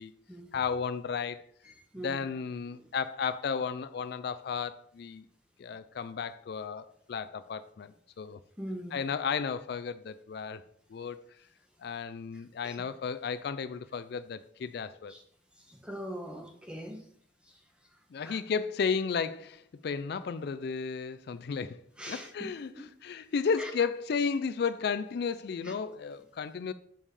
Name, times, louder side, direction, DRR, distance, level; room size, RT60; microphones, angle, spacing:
voice 1, 0.5-1.4 2.0-5.2 5.6-8.4 8.9-10.6 10.9-11.4 11.8-15.1 18.1-21.8 22.1-26.7, left 5 dB, 55° left, 0.3 m, -33 dB
voice 2, 1.6-2.2 2.7-2.9 8.6-9.0 12.6-12.8 15.1-15.2 15.6-17.0 17.5-17.6 18.2-18.4 22.0-22.9 23.6-23.7 25.6-25.7, equal, 5° right, 1.1 m, -42 dB
7.0 x 5.4 x 4.8 m
head